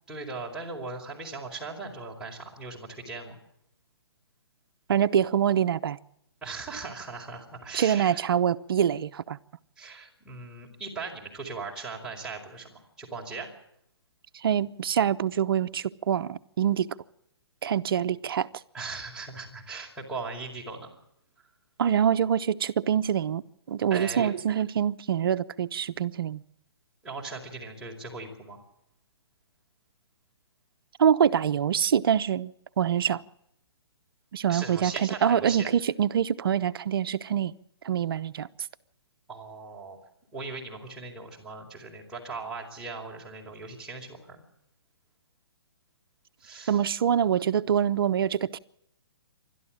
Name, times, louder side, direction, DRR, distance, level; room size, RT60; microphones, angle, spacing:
voice 1, 0.1-3.4 6.4-8.2 9.8-13.5 18.7-21.0 21.4-21.5 23.9-24.3 27.0-28.6 34.5-35.7 39.3-40.0 40.3-44.4 46.4-46.8, right 4 dB, 5° right, 4.9 m, -39 dB
voice 2, 4.9-6.0 7.7-9.4 14.4-16.9 17.6-18.5 21.8-23.4 23.7-26.4 31.0-33.2 34.3-37.5 37.8-38.5 46.7-48.6, right 9 dB, 60° right, 0.9 m, -25 dB
28.5 x 12.5 x 7.5 m
hypercardioid pair, 145°, 14 cm